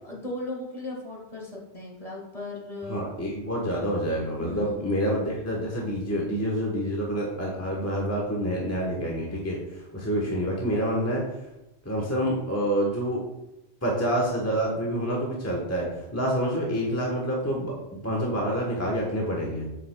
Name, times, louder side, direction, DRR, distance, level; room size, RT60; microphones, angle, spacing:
voice 1, 0.0-3.1 4.4-4.9, left 2 dB, 35° left, -2 dB, 1.7 m, -37 dB
voice 2, 2.9-11.2 11.8-13.2 13.8-17.8 18.0-19.7, equal, 15° left, -3 dB, 1.0 m, -27 dB
7.8 x 6.4 x 2.2 m, 0.90 s
omnidirectional pair, 1.1 m